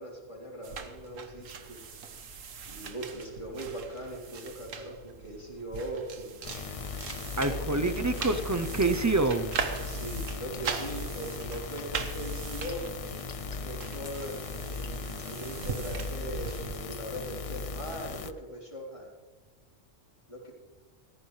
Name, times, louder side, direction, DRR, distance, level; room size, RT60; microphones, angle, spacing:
voice 1, 0.0-1.8 2.7-6.4 7.4-7.9 9.8-12.8 13.6-19.1 20.3-20.5, right 1 dB, 25° left, -3 dB, 3.7 m, -40 dB
sound 1, 0.6-16.8, right 5 dB, 80° right, 1.5 m, -40 dB
sound 2, 6.4-18.3, left 4 dB, 45° left, 0.4 m, -38 dB
voice 2, 7.4-9.6, right 3 dB, 25° right, 10 dB, 0.4 m, -27 dB
17.0 x 14.0 x 3.3 m, 1.2 s
omnidirectional pair, 1.3 m